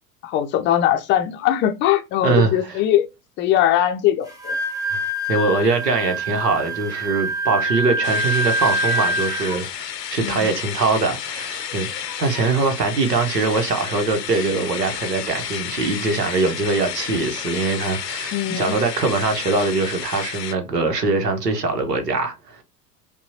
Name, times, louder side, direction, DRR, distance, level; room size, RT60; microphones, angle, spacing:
voice 1, 0.2-3.1 3.4-4.6 10.2-10.6 18.3-18.8, left 11 dB, 25° left, 0.5 m, -20 dB
voice 2, 2.2-2.7 4.9-5.0 5.3-22.6, right 3 dB, 80° right, 1.0 m, -22 dB
Wind instrument woodwind instrument, 4.3-9.6, right 1 dB, 5° right, 1.0 m, -25 dB
sound 1, 8.0-20.5, left 9 dB, 80° left, 0.6 m, -31 dB
5.4 x 2.3 x 2.7 m
figure-of-eight pair, 80°, 48 cm